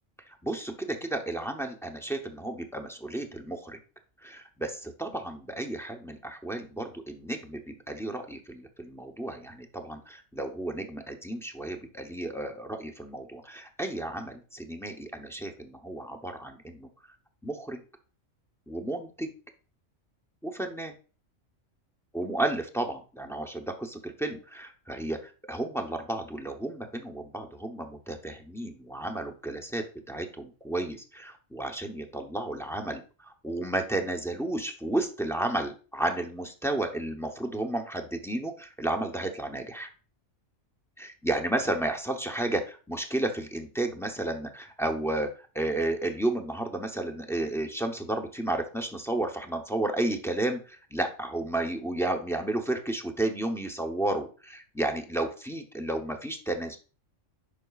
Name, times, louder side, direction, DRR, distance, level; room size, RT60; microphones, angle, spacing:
voice 1, 0.4-3.8 4.2-16.9 17.4-17.8 18.7-19.3 20.4-20.9 22.1-39.9 41.0-56.8, right 1 dB, 5° left, 2 dB, 0.4 m, -32 dB
9.6 x 5.8 x 2.4 m, 0.37 s
omnidirectional pair, 1.4 m